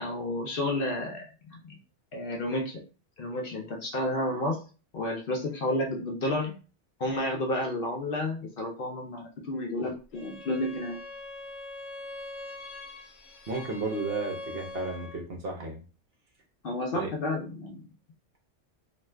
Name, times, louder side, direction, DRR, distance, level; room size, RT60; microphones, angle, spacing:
voice 1, 0.0-1.8 2.1-2.8 3.2-4.6 4.9-6.6 7.0-11.0 16.6-17.9, left 1 dB, 60° left, 1 dB, 0.7 m, -31 dB
Bowed string instrument, 10.1-15.3, left 2 dB, 80° left, 0.9 m, -42 dB
voice 2, 13.5-15.8 16.9-17.1, right 3 dB, 55° right, 1 dB, 0.8 m, -33 dB
2.5 x 2.3 x 3.2 m, 0.35 s
omnidirectional pair, 1.3 m